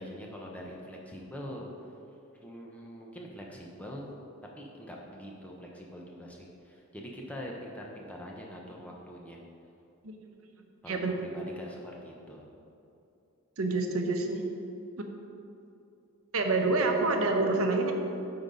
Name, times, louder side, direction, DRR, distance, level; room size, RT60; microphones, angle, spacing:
voice 1, 0.0-1.7 2.4-4.1 4.6-9.4 10.8-12.5, equal, 5° left, -2 dB, 0.8 m, -43 dB
voice 2, 13.6-14.4 16.3-17.9, right 3 dB, 70° right, 3 dB, 0.8 m, -27 dB
8.8 x 3.9 x 5.3 m, 2.7 s
head